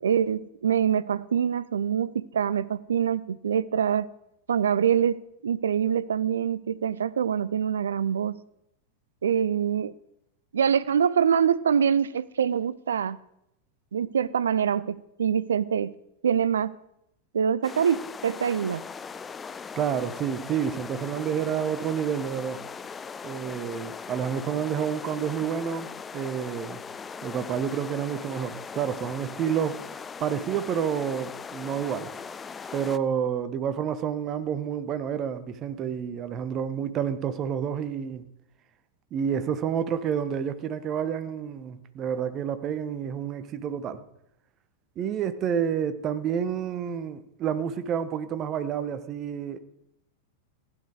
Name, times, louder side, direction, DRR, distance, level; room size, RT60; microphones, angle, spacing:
voice 1, 0.0-4.1 4.5-8.4 9.2-9.9 10.5-13.2 13.9-15.9 16.2-16.8 17.3-18.8, right 8 dB, 65° right, 0.5 m, -25 dB
sound 1, 17.6-33.0, left 5 dB, 20° left, 0.5 m, -39 dB
voice 2, 19.8-22.6 23.2-25.9 26.1-26.8 27.2-29.8 30.2-32.1 32.7-38.2 39.1-44.0 45.0-49.6, right 8 dB, 30° right, 1.1 m, -29 dB
15.5 x 11.0 x 4.8 m
figure-of-eight pair, 90°, 0 cm